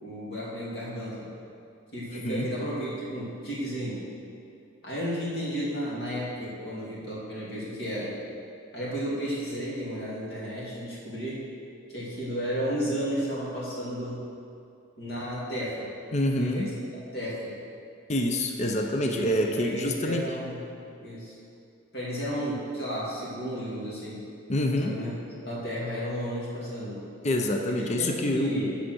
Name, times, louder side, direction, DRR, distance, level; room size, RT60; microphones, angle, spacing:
voice 1, 0.0-1.3 1.9-4.0 4.8-8.1 8.7-11.4 11.9-14.2 15.0-15.9 16.4-16.7 17.1-17.6 18.6-18.7 19.0-19.3 19.5-20.6 21.0-21.4 21.9-24.2 24.7-25.1 25.4-27.0 28.0-28.7, equal, 50° left, -7 dB, 2.4 m, -33 dB
voice 2, 2.1-2.5 16.1-16.7 18.1-20.2 24.5-25.0 27.2-28.7, left 1 dB, 30° left, 3 dB, 0.5 m, -27 dB
8.7 x 5.7 x 6.3 m, 2.5 s
head